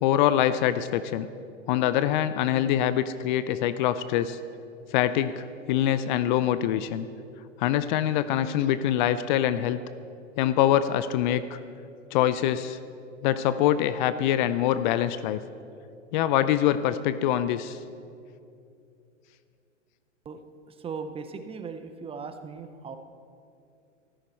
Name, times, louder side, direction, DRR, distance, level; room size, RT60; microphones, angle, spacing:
voice 1, 0.0-1.3 1.7-4.4 4.9-7.1 7.6-9.8 10.4-11.6 12.1-12.8 13.2-15.4 16.1-17.8, left 11 dB, 40° left, 13 dB, 0.5 m, -24 dB
voice 2, 20.7-23.0, right 5 dB, 15° right, 9 dB, 0.6 m, -38 dB
15.0 x 14.0 x 4.5 m, 2.5 s
hypercardioid pair, 115°, 38 cm